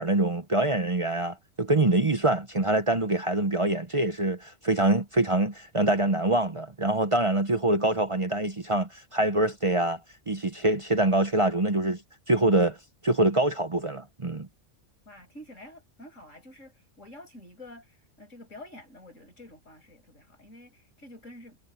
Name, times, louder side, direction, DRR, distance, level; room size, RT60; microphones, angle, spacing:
voice 1, 0.0-10.0 10.3-12.0 12.3-12.8 13.0-14.5, right 2 dB, 30° right, 0.9 m, -25 dB
voice 2, 15.1-21.6, left 1 dB, 90° left, 7.3 m, -48 dB
omnidirectional pair, 1.3 m